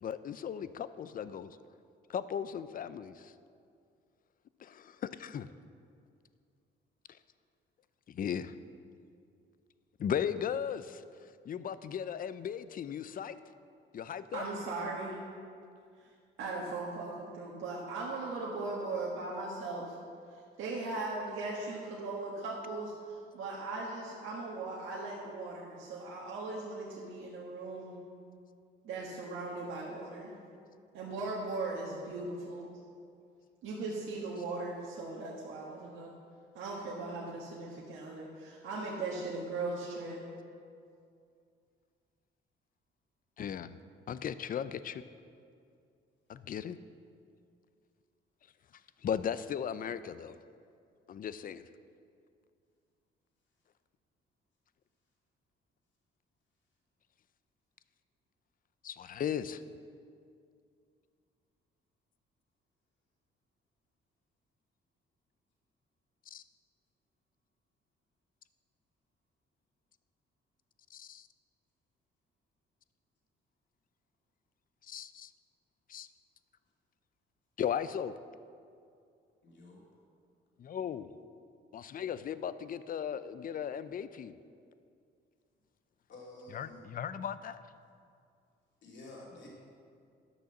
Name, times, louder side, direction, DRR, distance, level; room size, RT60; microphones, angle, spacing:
voice 1, 0.0-1.6 2.1-3.3 4.6-5.5 7.1-7.2 8.1-8.5 10.0-11.0 11.5-13.4 13.9-14.4 43.4-43.8 44.1-45.0 46.3-46.8 49.0-50.4 51.1-51.7 58.8-59.6 66.3-66.4 70.9-71.3 74.8-75.3 75.9-76.1 77.6-78.1 80.6-81.1 81.7-84.4 86.5-87.6, left 8 dB, 45° left, 14 dB, 0.5 m, -37 dB
voice 2, 14.3-15.2 16.4-20.0 20.3-28.0 28.8-30.3 30.9-32.7 33.6-36.1 36.5-40.2, right 3 dB, 85° right, -4 dB, 1.5 m, -38 dB
voice 3, 79.4-79.8 86.1-86.8 88.8-89.5, left 2 dB, 65° left, -4 dB, 2.7 m, -50 dB
11.0 x 6.3 x 7.0 m, 2.3 s
cardioid pair, 90°, 20 cm